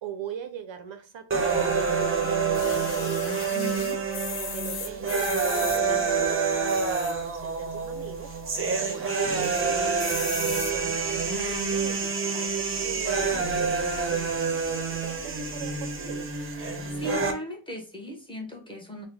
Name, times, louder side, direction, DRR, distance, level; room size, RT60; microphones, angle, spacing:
voice 1, 0.0-3.8 4.3-8.3 8.7-9.9 10.3-16.3, right 8 dB, 65° right, 7 dB, 0.6 m, -41 dB
sound 1, 1.3-17.3, right 5 dB, 25° right, 0.6 m, -27 dB
sound 2, 2.5-5.8 6.6-7.3 7.8-7.9 8.0-8.1 8.5-8.9 9.4-9.6 10.0-10.7 11.4-11.5, left 7 dB, 70° left, 0.8 m, -37 dB
voice 2, 3.5-4.0 16.9-19.0, equal, 10° left, 0 dB, 0.8 m, -37 dB
3.6 x 2.1 x 3.3 m, 0.35 s
wide cardioid pair, 135°, 49 cm